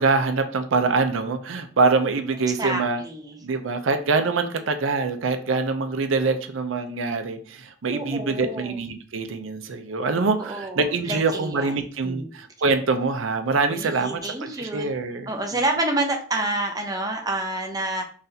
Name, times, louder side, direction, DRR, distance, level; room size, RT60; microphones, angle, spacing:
voice 1, 0.0-3.0 3.4-15.6, right 4 dB, 85° right, 8 dB, 0.6 m, -24 dB
voice 2, 2.6-3.4 7.9-8.8 10.4-12.3 13.7-14.9 15.3-18.0, right 2 dB, 20° right, 2 dB, 0.6 m, -28 dB
3.9 x 3.2 x 2.7 m, 0.42 s
head